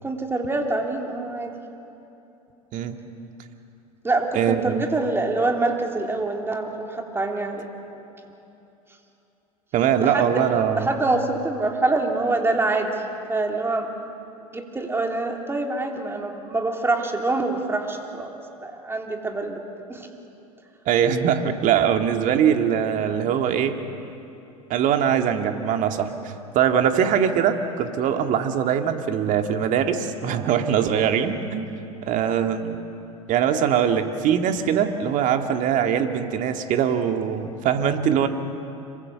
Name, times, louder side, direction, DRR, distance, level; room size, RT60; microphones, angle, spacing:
voice 1, 0.0-1.5 4.0-7.7 10.0-10.4 10.8-13.0 13.3-13.9 14.5-18.3 18.6-19.6 19.9-20.1, right 2 dB, 10° right, 2 dB, 3.2 m, -25 dB
voice 2, 4.4-4.8 9.7-10.9 20.9-23.8 24.7-31.7 32.1-32.8 33.3-38.3, right 8 dB, 45° right, 6 dB, 2.1 m, -22 dB
26.5 x 23.5 x 6.9 m, 2.9 s
figure-of-eight pair, 80°, 19 cm